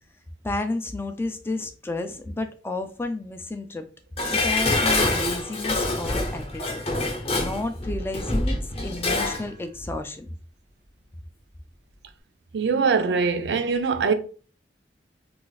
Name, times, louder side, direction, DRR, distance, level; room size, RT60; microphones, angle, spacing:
voice 1, 0.4-3.9 4.3-8.6 8.8-10.3, left 2 dB, 15° left, 0.3 m, -31 dB
Dishes pots and pans, 4.2-9.5 9.8-9.9, left 2 dB, 35° left, 0.7 m, -26 dB
voice 2, 12.5-14.1, right 5 dB, 70° right, 0.4 m, -22 dB
2.5 x 2.4 x 3.9 m
head